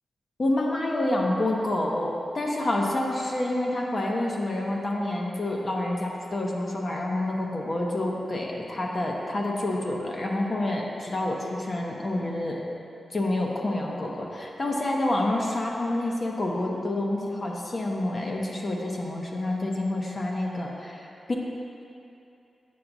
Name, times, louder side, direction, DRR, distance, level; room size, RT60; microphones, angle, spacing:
voice 1, 0.4-12.6 13.1-21.3, left 1 dB, 45° left, -1 dB, 0.8 m, -28 dB
8.5 x 5.8 x 2.6 m, 2.7 s
wide cardioid pair, 85°, 0 cm